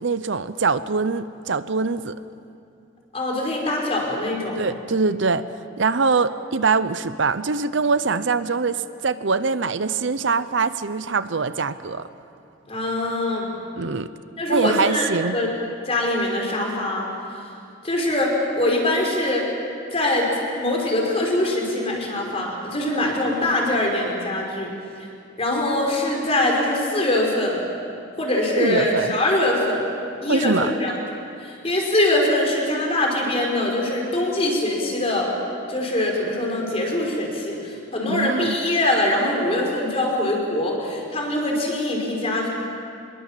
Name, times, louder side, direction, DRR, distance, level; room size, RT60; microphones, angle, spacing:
voice 1, 0.0-2.1 4.6-5.4 5.8-12.1 13.8-14.1 14.5-15.4 28.6-29.1 30.3-30.7 38.0-38.6, right 4 dB, 65° right, 13 dB, 0.7 m, -23 dB
voice 2, 3.1-4.7 12.7-13.5 14.4-15.5 15.9-17.1 17.8-19.5 19.9-20.3 20.6-24.7 25.4-27.6 28.2-29.8 30.2-30.9 31.4-35.3 35.7-42.5, left 1 dB, 30° left, -1 dB, 5.1 m, -23 dB
25.5 x 22.0 x 7.5 m, 2.5 s
head